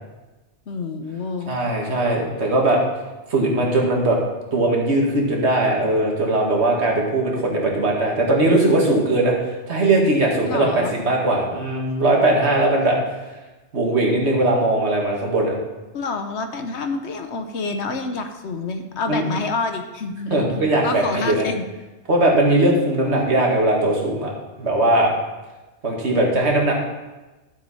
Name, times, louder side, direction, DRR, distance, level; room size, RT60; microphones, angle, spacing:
voice 1, 0.7-1.5 10.4-10.9 15.9-21.6, left 3 dB, 75° left, 7 dB, 1.2 m, -28 dB
voice 2, 1.5-2.8 3.3-4.2 4.5-13.0 13.7-15.5 19.1-19.3 20.3-21.5 22.1-24.3 24.6-25.1 25.8-26.7, right 2 dB, 70° right, -1 dB, 2.1 m, -19 dB
12.0 x 7.0 x 4.2 m, 1.1 s
omnidirectional pair, 1.2 m